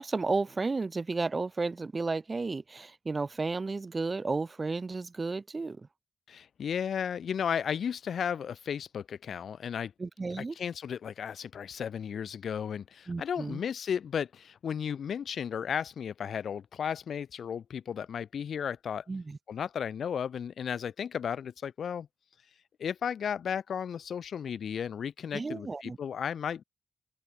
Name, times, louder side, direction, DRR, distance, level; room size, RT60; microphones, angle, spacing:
voice 1, 0.0-5.9 10.0-10.6 13.1-13.6 19.1-19.4 25.3-26.0, right 3 dB, 30° right, 0.4 m, -33 dB
voice 2, 6.3-9.9 10.4-19.0 19.5-22.1 22.8-26.6, left 8 dB, 75° left, 0.4 m, -34 dB
open air
cardioid pair, 100°, 0 cm